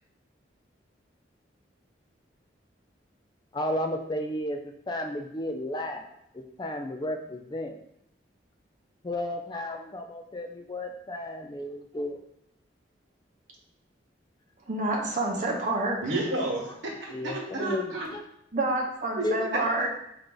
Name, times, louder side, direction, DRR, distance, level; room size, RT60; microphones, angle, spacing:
voice 1, 3.5-4.6 4.9-6.0 6.3-7.8 9.0-12.2 17.1-18.2 19.2-19.4, left 1 dB, 25° left, 4 dB, 0.3 m, -33 dB
voice 2, 14.7-16.2 18.5-19.9, right 2 dB, 40° right, -1 dB, 0.7 m, -28 dB
voice 3, 16.0-18.1 19.2-19.6, right 2 dB, 80° right, -2 dB, 1.2 m, -31 dB
4.5 x 2.6 x 3.8 m, 0.76 s
head